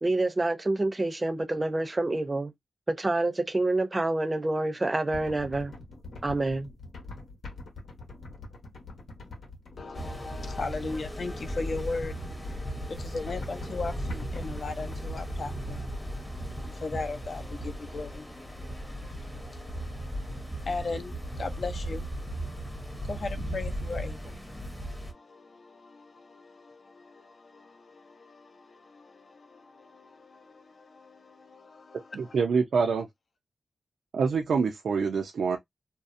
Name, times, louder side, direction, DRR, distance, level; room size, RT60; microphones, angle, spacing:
voice 1, 0.0-2.5 2.9-5.7 6.2-6.7, right 2 dB, 25° right, 0.6 m, -27 dB
sound 1, 5.1-15.2, left 3 dB, 90° left, 1.0 m, -45 dB
voice 2, 9.8-32.4, left 3 dB, 60° left, 0.5 m, -39 dB
sound 2, 9.9-25.1, right 1 dB, 10° left, 0.7 m, -37 dB
voice 3, 32.1-33.1 34.1-35.6, right 5 dB, 85° right, 0.4 m, -26 dB
2.7 x 2.0 x 2.5 m
wide cardioid pair, 95°, 0 cm